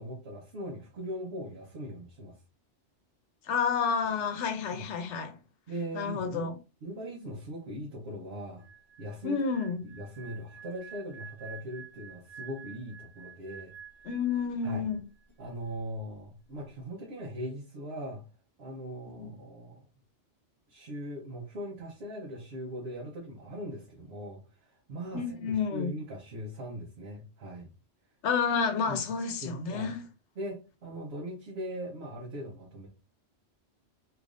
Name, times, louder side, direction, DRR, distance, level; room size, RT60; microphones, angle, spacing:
voice 1, 0.0-2.4 4.7-4.8 5.7-6.5 6.8-8.6 9.0-9.4 9.8-13.7 14.6-14.9 15.4-18.2 18.6-19.9 20.7-27.7 28.9-29.0 29.4-29.9 30.4-32.9, equal, 60° right, 1.1 m, -40 dB
voice 2, 3.4-5.4 5.9-6.6 9.2-9.8 14.0-15.0 19.2-19.3 25.1-25.9 28.2-30.0, left 6 dB, 75° left, 1.0 m, -30 dB
sound 1, 8.6-15.0 15.2-15.5, right 7 dB, 30° left, 0.9 m, -50 dB
3.3 x 3.0 x 2.4 m
omnidirectional pair, 1.2 m